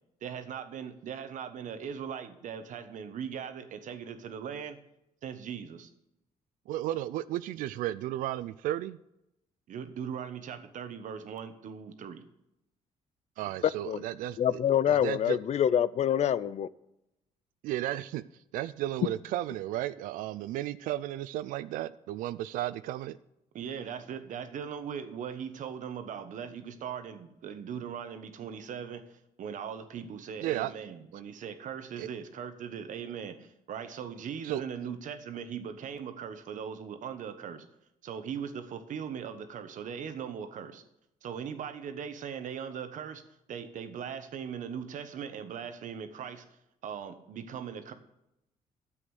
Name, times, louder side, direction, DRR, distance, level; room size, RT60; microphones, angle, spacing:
voice 1, 0.2-4.8 5.2-5.9 9.7-12.2 23.5-37.6 38.0-40.8 41.2-43.2 43.5-46.4 46.8-47.9, right 7 dB, 65° right, 9 dB, 1.2 m, -39 dB
voice 2, 6.7-9.0 13.4-14.6 14.9-15.4 17.6-18.2 18.5-23.2 30.4-30.7 32.0-32.1 34.4-34.6, right 14 dB, 85° right, 15 dB, 0.4 m, -34 dB
voice 3, 14.4-16.7, left 9 dB, 55° left, 18 dB, 0.5 m, -26 dB
9.7 x 7.7 x 6.3 m, 0.85 s
cardioid pair, 90°, 14 cm